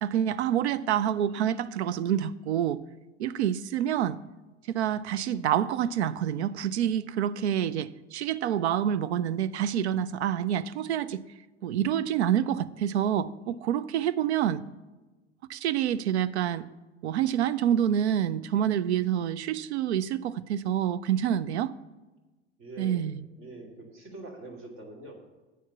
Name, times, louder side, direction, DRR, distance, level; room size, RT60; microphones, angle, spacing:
voice 1, 0.0-2.8 3.2-4.2 4.7-11.2 11.6-14.6 15.5-16.6 17.0-21.7 22.8-23.2, right 10 dB, 70° right, 0.5 m, -27 dB
voice 2, 22.6-23.0 23.4-25.2, right 2 dB, 50° right, 2.3 m, -44 dB
8.3 x 7.1 x 5.9 m
figure-of-eight pair, 75°, 35 cm